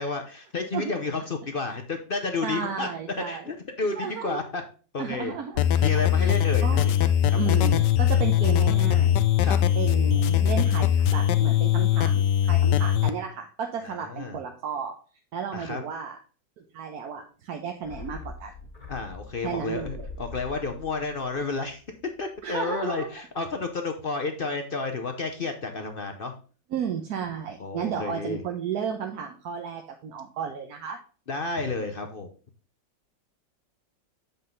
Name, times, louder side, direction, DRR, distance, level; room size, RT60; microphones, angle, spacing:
voice 1, 0.0-2.9 3.2-4.6 4.9-5.3 5.8-7.5 9.4-9.6 13.8-14.4 15.5-15.8 18.9-21.8 22.2-26.3 27.6-28.4 31.3-32.3, left 3 dB, 50° left, 5 dB, 0.7 m, -31 dB
voice 2, 2.4-3.5 4.0-4.4 5.0-5.6 6.1-6.9 7.3-9.2 9.7-15.0 15.3-16.2 16.6-18.5 19.4-20.1 22.4-23.1 26.7-31.0, right 7 dB, 65° right, 3 dB, 1.3 m, -33 dB
sound 1, 5.6-13.1, left 10 dB, 80° left, 1.2 m, -21 dB
Reaper voice effect, 17.8-22.4 22.7-22.8, left 4 dB, 25° left, 1.7 m, -43 dB
7.6 x 5.4 x 3.8 m, 0.37 s
omnidirectional pair, 1.9 m